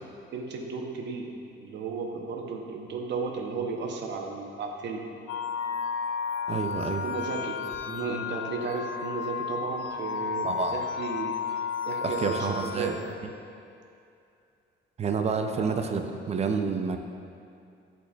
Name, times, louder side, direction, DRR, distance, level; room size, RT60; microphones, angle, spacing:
voice 1, 0.3-1.3 1.6-5.0 6.9-7.6 7.9-11.3 11.9-13.0 15.5-15.8, right 4 dB, 60° right, 1 dB, 0.8 m, -34 dB
sound 1, 5.3-13.2, left 6 dB, 85° left, 0.5 m, -33 dB
voice 2, 6.5-7.0 10.4-10.7 12.0-13.0 13.2-13.3 15.0-17.0, right 5 dB, 30° right, 5 dB, 0.4 m, -29 dB
10.5 x 4.1 x 2.3 m, 2.5 s
cardioid pair, 125°, 21 cm